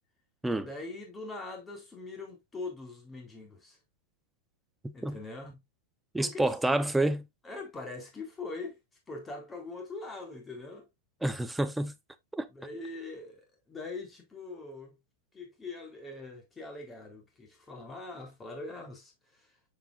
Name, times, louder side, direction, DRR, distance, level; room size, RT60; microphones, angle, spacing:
voice 1, 0.5-3.8 4.9-5.6 6.2-6.5 7.4-8.8 9.1-10.9 12.5-15.0 15.3-19.5, left 3 dB, 15° left, 3.7 m, -42 dB
voice 2, 4.8-5.2 6.1-7.2 11.2-11.9 12.3-12.5, right 1 dB, 5° right, 0.9 m, -28 dB
8.0 x 6.7 x 2.6 m
supercardioid pair, 130°, 0 cm